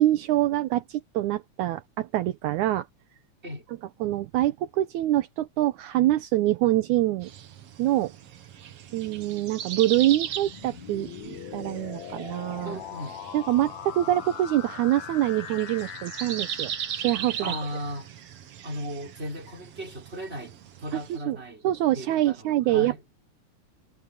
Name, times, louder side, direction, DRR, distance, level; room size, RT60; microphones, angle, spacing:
voice 1, 0.0-2.9 4.0-7.3 7.8-8.1 8.9-12.8 13.3-17.5 20.9-21.4 21.6-23.2, right 14 dB, 75° right, 2.2 m, -25 dB
sound 1, 7.2-21.2, right 9 dB, 60° right, 2.0 m, -39 dB
sound 2, 10.1-18.1, left 9 dB, 65° left, 2.7 m, -41 dB
voice 2, 12.6-13.2 14.0-14.2 17.4-18.1 18.6-21.7 21.9-23.0, equal, 20° right, 5.5 m, -37 dB
omnidirectional pair, 3.6 m